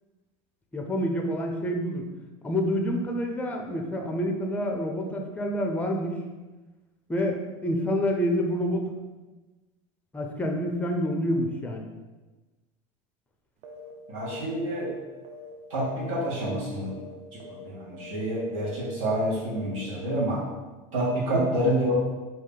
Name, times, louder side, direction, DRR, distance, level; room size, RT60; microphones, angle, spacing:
voice 1, 0.7-2.1 2.4-6.2 7.1-9.0 10.1-11.9 21.1-21.4, equal, 10° left, 2 dB, 0.4 m, -28 dB
sound 1, 13.6-13.9 14.2-14.4 14.7-16.1 16.3-16.6 16.9-17.1 17.4-17.7 17.9-18.2 18.5-18.8 19.0-19.3 19.5-19.8 20.1-20.4, left 3 dB, 45° right, 0.5 m, -44 dB
voice 2, 14.1-14.9 15.7-17.0 17.3-20.4 20.9-21.9, right 1 dB, 85° right, -6 dB, 1.4 m, -28 dB
2.7 x 2.7 x 3.7 m, 1.2 s
supercardioid pair, 105°, 16 cm